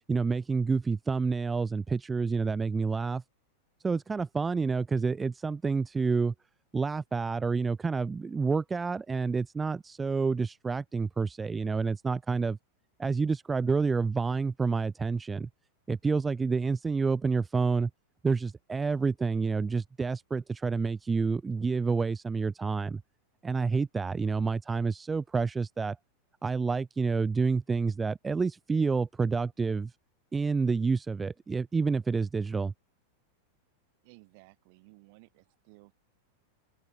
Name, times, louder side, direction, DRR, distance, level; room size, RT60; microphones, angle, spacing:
voice 1, 0.1-3.2 3.8-6.3 6.7-12.6 13.0-15.5 15.9-17.9 18.2-23.0 23.4-26.0 26.4-29.9 30.3-32.7, right 4 dB, 15° right, 0.3 m, -28 dB
voice 2, 34.0-35.9, right 28 dB, 45° right, 6.6 m, -57 dB
open air
figure-of-eight pair, 90°, 0 cm